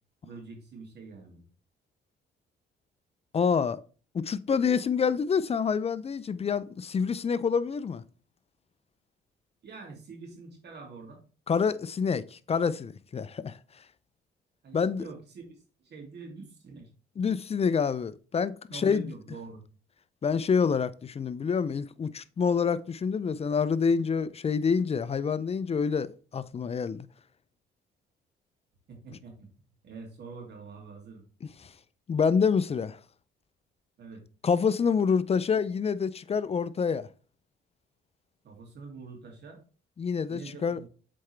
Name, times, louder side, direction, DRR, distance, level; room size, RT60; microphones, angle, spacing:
voice 1, 0.2-1.4 9.6-11.2 14.6-16.9 18.7-19.6 28.9-29.5 29.8-31.2 34.0-34.2 38.4-39.6 40.3-40.9, right 4 dB, 60° right, 2.7 m, -45 dB
voice 2, 3.3-3.8 4.1-8.0 11.5-13.6 14.7-15.1 17.2-19.1 20.2-27.1 31.4-31.5 32.1-33.0 34.4-37.1 40.0-40.8, left 6 dB, 30° left, 0.5 m, -27 dB
7.5 x 4.4 x 3.4 m
cardioid pair, 90°, 20 cm